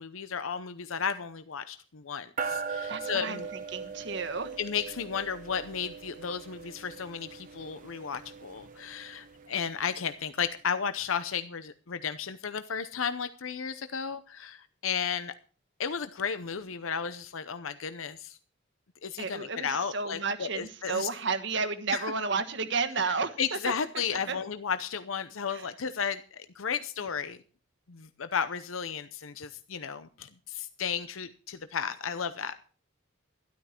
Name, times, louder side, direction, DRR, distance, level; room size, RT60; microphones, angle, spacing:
voice 1, 0.0-3.5 4.6-15.3 15.8-18.4 19.0-21.1 21.9-22.1 23.0-27.4 27.9-32.6, left 7 dB, 90° left, 11 dB, 0.7 m, -34 dB
sound 1, 2.4-10.1, right 5 dB, 40° right, 1.0 m, -40 dB
voice 2, 2.9-4.5 19.2-23.6 24.3-24.4 25.5-25.7, right 4 dB, 60° right, 9 dB, 1.4 m, -32 dB
12.5 x 12.0 x 4.4 m, 0.38 s
head